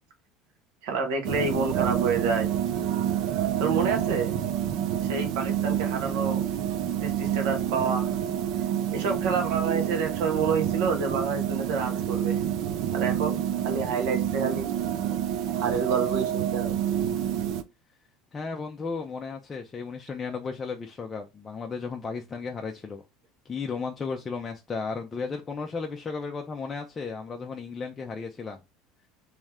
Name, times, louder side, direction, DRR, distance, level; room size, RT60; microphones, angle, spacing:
voice 1, 0.8-2.5 3.6-4.3 5.0-6.4 7.0-8.1 8.9-12.4 12.9-14.7 15.0-15.1 15.5-16.8, right 5 dB, 80° right, 1.3 m, -28 dB
sound 1, 1.2-17.6, right 10 dB, 60° right, 0.5 m, -28 dB
voice 2, 18.3-23.0 23.4-28.6, left 4 dB, 20° left, 0.5 m, -34 dB
3.1 x 3.1 x 3.6 m
supercardioid pair, 135°, 0 cm